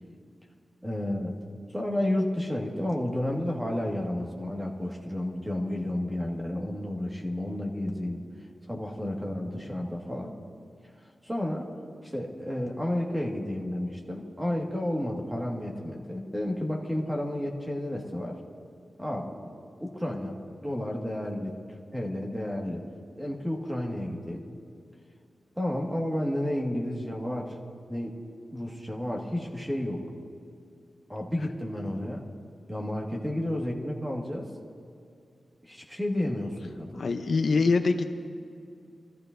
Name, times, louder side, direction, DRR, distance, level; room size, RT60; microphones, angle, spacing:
voice 1, 0.8-1.3 1.7-8.2 8.7-10.3 11.2-11.7 12.0-18.4 19.0-21.6 21.9-22.8 23.1-24.5 25.6-27.6 27.9-28.2 28.5-30.0 31.1-32.2 32.7-34.5 35.6-37.1, left 1 dB, 10° right, -1 dB, 1.7 m, -31 dB
voice 2, 37.0-38.1, left 4 dB, 60° left, 7 dB, 0.6 m, -24 dB
25.0 x 14.5 x 2.6 m, 2.4 s
wide cardioid pair, 130°, 0 cm